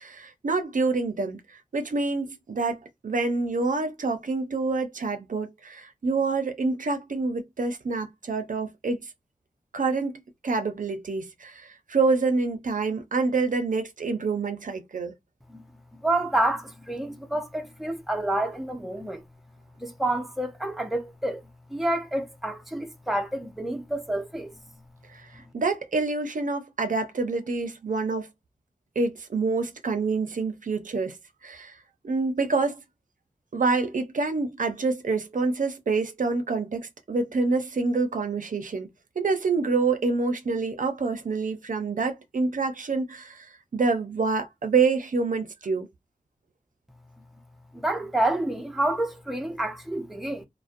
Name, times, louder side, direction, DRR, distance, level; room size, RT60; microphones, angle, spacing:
voice 1, 0.0-9.1 9.7-15.1 25.1-28.3 29.0-31.2 31.4-31.8 32.0-32.8 33.5-38.9 39.2-45.9, right 4 dB, 75° right, 0.5 m, -27 dB
voice 2, 16.0-19.2 19.8-21.4 21.7-24.6 47.7-50.5, right 1 dB, ahead, 0.5 m, -28 dB
2.5 x 2.0 x 2.4 m
wide cardioid pair, 65°, 14 cm